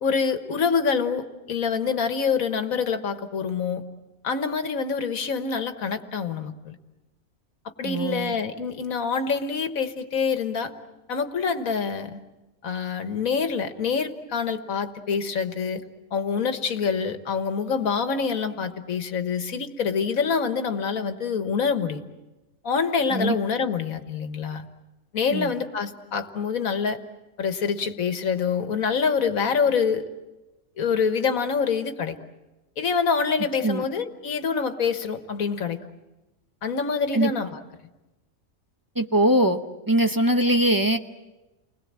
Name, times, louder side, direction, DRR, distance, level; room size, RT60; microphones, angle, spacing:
voice 1, 0.0-3.8 4.2-6.8 7.8-10.7 11.1-12.2 12.6-15.8 16.1-22.0 22.6-24.7 25.1-27.0 27.4-30.1 30.8-32.2 32.8-35.8 36.6-37.6, left 5 dB, 80° left, 9 dB, 1.8 m, -26 dB
voice 2, 7.8-8.3 23.1-23.4 25.3-25.5 33.6-33.9 37.1-37.3 38.9-39.6 39.9-41.0, right 1 dB, 20° right, 6 dB, 0.7 m, -21 dB
30.0 x 21.0 x 7.5 m, 1.1 s
omnidirectional pair, 1.4 m